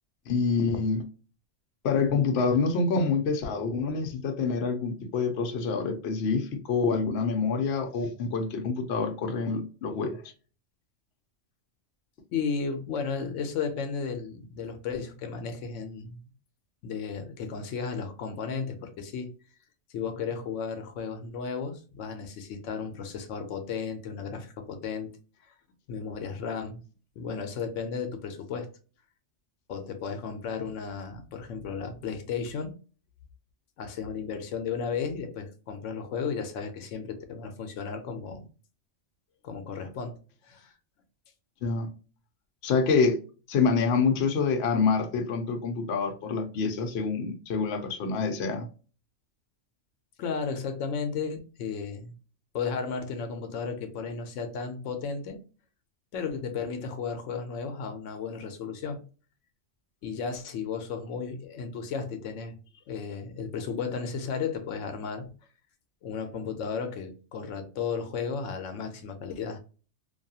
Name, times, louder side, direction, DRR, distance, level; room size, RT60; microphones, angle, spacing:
voice 1, 0.3-1.0 1.8-10.2 41.6-41.9 42.6-43.2 43.5-48.7, left 4 dB, 65° left, 0.8 m, -26 dB
voice 2, 12.3-16.2 16.8-19.3 19.9-25.1 25.9-26.8 27.2-28.7 29.7-32.8 33.8-38.5 39.4-40.2 40.4-40.7 50.2-52.1 52.5-55.4 56.1-59.0 60.0-62.6 62.9-65.3 66.0-69.6, left 5 dB, 85° left, 1.0 m, -34 dB
2.5 x 2.3 x 2.7 m
omnidirectional pair, 1.2 m